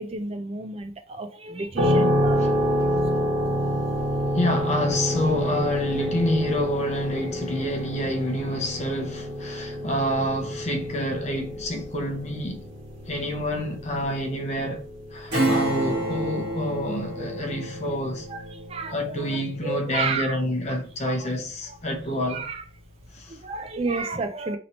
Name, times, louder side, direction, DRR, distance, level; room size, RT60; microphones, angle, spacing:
voice 1, 0.0-2.6 15.3-15.4 18.3-20.4 21.0-21.3 21.7-21.8 22.1-22.6 23.3-24.6, right 3 dB, 30° right, 0.4 m, -32 dB
sound 1, 1.8-16.4, equal, 75° right, 1.1 m, -28 dB
voice 2, 4.3-12.7 13.1-14.8 15.1-18.3 18.9-22.4 23.1-23.4, left 1 dB, 35° left, 0.7 m, -28 dB
Acoustic guitar / Strum, 15.3-21.5 21.9-22.0, right 1 dB, 45° right, 1.5 m, -30 dB
2.9 x 2.7 x 4.3 m
head